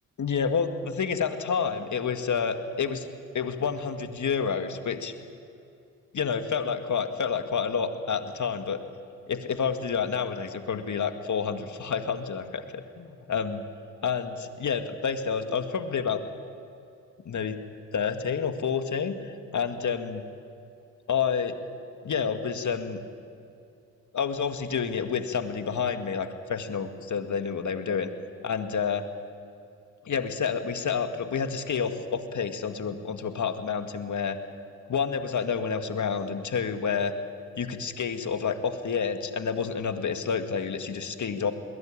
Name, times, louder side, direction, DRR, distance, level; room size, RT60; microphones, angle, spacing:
voice 1, 0.2-3.1 3.3-5.1 6.1-8.8 9.3-13.6 14.0-16.2 17.3-17.6 17.9-19.2 19.5-20.2 21.1-21.6 22.0-23.0 24.1-28.1 28.4-29.0 30.0-34.4 34.9-37.1 37.6-41.5, left 6 dB, 50° left, 7 dB, 2.1 m, -29 dB
21.5 x 20.0 x 8.8 m, 2.5 s
hypercardioid pair, 45°, 37 cm